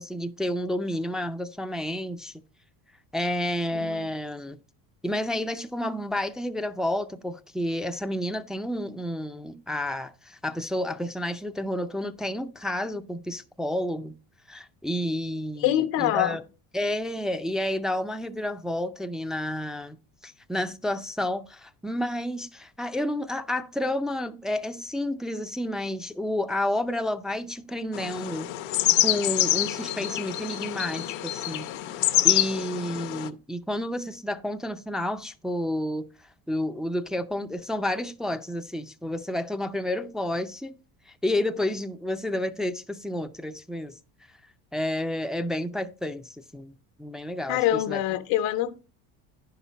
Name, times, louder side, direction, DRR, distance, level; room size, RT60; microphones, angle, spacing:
voice 1, 0.0-2.4 3.1-4.6 5.0-14.1 14.5-16.4 16.7-20.0 20.2-28.5 29.0-31.7 32.0-36.1 36.5-40.8 41.2-43.9 44.7-48.0, left 1 dB, ahead, 0.4 m, -30 dB
voice 2, 3.7-4.1 15.6-16.4 47.5-48.8, left 13 dB, 85° left, 1.1 m, -25 dB
sound 1, 27.9-33.3, left 15 dB, 70° left, 0.8 m, -26 dB
10.0 x 5.8 x 4.1 m
supercardioid pair, 100°, 48 cm